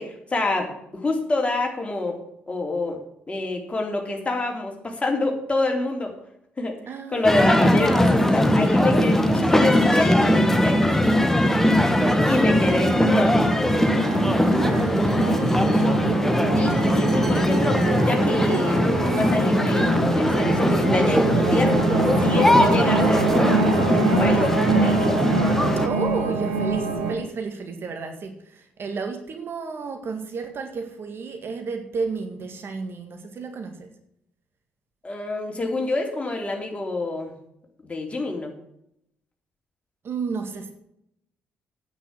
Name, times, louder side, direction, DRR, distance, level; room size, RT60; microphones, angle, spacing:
voice 1, 0.0-2.2 2.5-3.0 3.3-6.1 6.6-6.8 7.1-11.1 12.3-13.3 16.5-21.7 22.2-23.6 23.9-25.2 35.0-37.3 37.8-38.5, left 2 dB, 20° left, 2 dB, 3.3 m, -27 dB
voice 2, 6.9-8.0 12.0-12.9 13.2-13.4 14.0-16.2 25.8-33.9 40.0-40.7, right 5 dB, 45° right, 5 dB, 1.9 m, -32 dB
sound 1, 7.2-25.9, left 1 dB, 5° left, 1.5 m, -20 dB
sound 2, 13.0-27.2, right 4 dB, 75° right, 1.4 m, -26 dB
9.5 x 9.0 x 6.2 m, 0.75 s
figure-of-eight pair, 45°, 5 cm